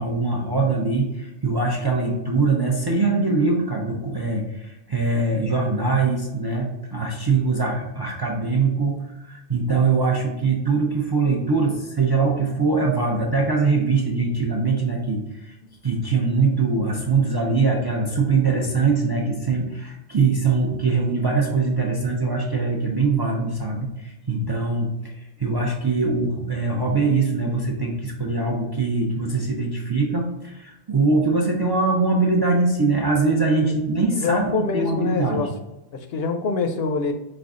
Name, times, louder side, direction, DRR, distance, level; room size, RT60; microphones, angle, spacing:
voice 1, 0.0-15.5 15.8-24.9 25.4-35.4, right 4 dB, 30° right, 0 dB, 0.4 m, -22 dB
voice 2, 34.2-35.5 35.9-37.1, left 4 dB, 70° left, 5 dB, 0.7 m, -25 dB
5.0 x 2.3 x 3.6 m, 0.93 s
omnidirectional pair, 1.1 m